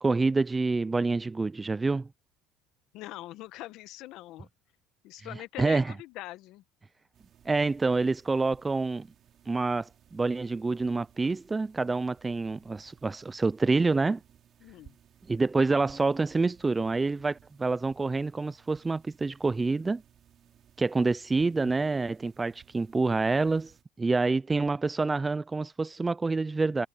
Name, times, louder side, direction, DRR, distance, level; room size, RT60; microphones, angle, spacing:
voice 1, 0.0-2.1 5.6-5.9 7.5-9.1 9.5-14.2 15.3-20.0 20.8-23.7 24.0-26.9, right 3 dB, 15° right, 0.4 m, -27 dB
voice 2, 2.9-4.5 5.0-6.6 14.6-14.9, left 16 dB, 65° left, 1.0 m, -42 dB
sound 1, 7.1-23.8, right 9 dB, 45° right, 3.1 m, -60 dB
supercardioid pair, 105°, 0 cm